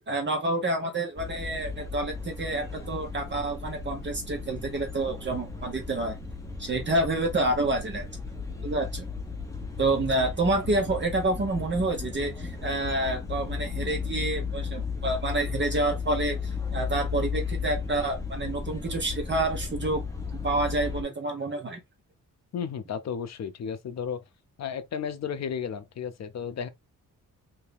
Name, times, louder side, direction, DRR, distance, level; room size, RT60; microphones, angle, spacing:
voice 1, 0.1-6.2 6.6-8.1 8.6-9.0 9.8-20.0 20.4-21.8, right 2 dB, 35° right, 1.0 m, -28 dB
sound 1, 1.2-21.0, left 5 dB, 10° left, 0.9 m, -35 dB
voice 2, 22.5-24.2 24.6-26.7, left 7 dB, 50° left, 0.6 m, -33 dB
3.4 x 2.7 x 3.3 m
wide cardioid pair, 150°, 34 cm